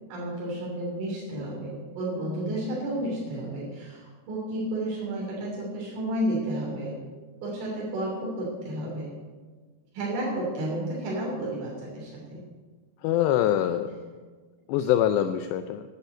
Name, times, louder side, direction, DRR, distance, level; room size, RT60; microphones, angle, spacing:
voice 1, 0.1-7.0 7.4-9.1 9.9-12.4 13.8-14.0, right 1 dB, 80° right, -5 dB, 5.7 m, -32 dB
voice 2, 13.0-13.9 14.7-15.8, left 11 dB, 90° left, 9 dB, 2.4 m, -24 dB
11.5 x 11.0 x 7.9 m, 1.4 s
omnidirectional pair, 5.6 m